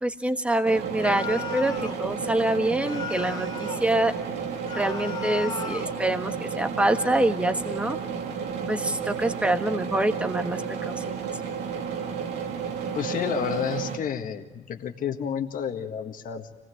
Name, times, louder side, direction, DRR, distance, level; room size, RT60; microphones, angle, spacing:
voice 1, 0.0-4.1 4.7-8.0 8.7-11.3, right 1 dB, 5° right, 7 dB, 1.4 m, -26 dB
sound 1, 0.6-14.0, right 6 dB, 80° right, 2.7 m, -32 dB
sound 2, 1.0-2.0 2.8-3.9 4.6-6.0, left 6 dB, 25° left, 2.5 m, -36 dB
voice 2, 12.9-16.5, left 7 dB, 55° left, 4 dB, 1.7 m, -30 dB
26.0 x 19.0 x 7.8 m, 1.2 s
cardioid pair, 110°, 17 cm